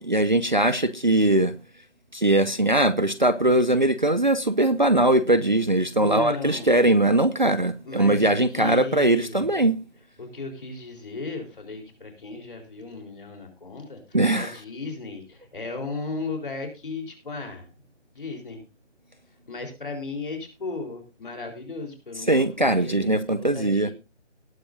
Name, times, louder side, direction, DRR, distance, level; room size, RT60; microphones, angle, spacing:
voice 1, 0.0-1.5 2.1-9.8 14.1-14.5 22.3-23.9, right 1 dB, 40° right, 0.6 m, -21 dB
voice 2, 6.0-6.7 7.8-9.4 10.2-17.7 18.1-18.6 19.5-23.9, left 3 dB, 45° left, 4.0 m, -35 dB
18.5 x 9.4 x 2.6 m
figure-of-eight pair, 170°, 36 cm